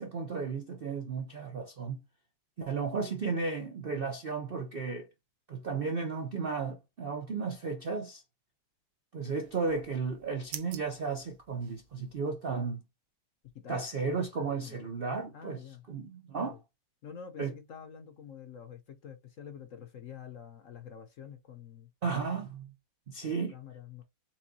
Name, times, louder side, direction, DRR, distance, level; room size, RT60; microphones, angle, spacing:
voice 1, 0.0-2.0 2.6-5.1 5.5-8.2 9.1-12.8 13.7-15.6 15.9-16.6 17.4-17.5 22.0-22.7 23.1-23.6, right 4 dB, 55° right, 0.6 m, -34 dB
sound 1, 9.4-12.2, right 9 dB, 70° right, 1.3 m, -49 dB
voice 2, 13.5-13.9 14.6-14.9 15.3-15.8 16.4-16.6 17.0-21.9 23.2-24.0, left 8 dB, 55° left, 0.9 m, -47 dB
4.5 x 3.7 x 2.7 m
omnidirectional pair, 2.0 m